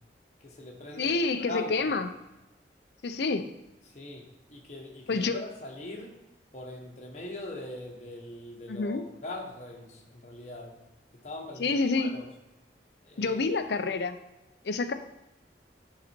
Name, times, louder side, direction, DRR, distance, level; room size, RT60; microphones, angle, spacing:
voice 1, 0.4-1.9 3.8-6.1 6.5-10.8 11.2-12.3 13.0-13.4, left 2 dB, 40° left, -1 dB, 1.2 m, -41 dB
voice 2, 1.0-2.1 3.0-3.5 5.1-5.4 8.7-9.0 11.6-12.1 13.2-14.2 14.6-14.9, left 3 dB, 75° left, 9 dB, 0.5 m, -28 dB
7.7 x 4.1 x 4.4 m, 0.97 s
head